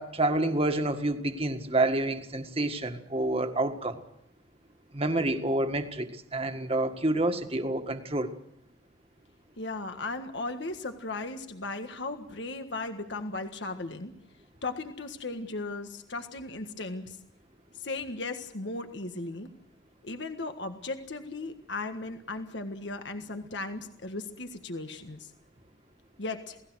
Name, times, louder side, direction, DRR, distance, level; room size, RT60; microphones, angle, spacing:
voice 1, 0.0-4.0 4.9-8.3, right 2 dB, 30° right, 6 dB, 1.8 m, -28 dB
voice 2, 9.6-14.1 14.6-17.2 17.7-19.5 20.0-25.3 26.2-26.6, left 2 dB, 65° left, 7 dB, 1.6 m, -36 dB
29.0 x 18.0 x 6.4 m, 0.73 s
head